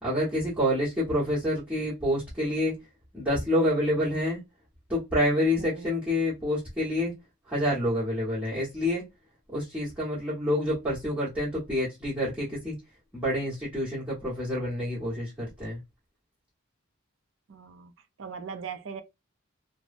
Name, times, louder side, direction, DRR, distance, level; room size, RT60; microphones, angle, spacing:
voice 1, 0.0-2.7 3.1-4.4 4.9-7.1 7.5-9.0 9.5-12.7 13.1-15.8, left 1 dB, 10° right, 1.1 m, -27 dB
voice 2, 5.6-5.9 17.5-17.9 18.2-19.0, right 6 dB, 65° right, 0.5 m, -39 dB
3.1 x 2.1 x 2.5 m
head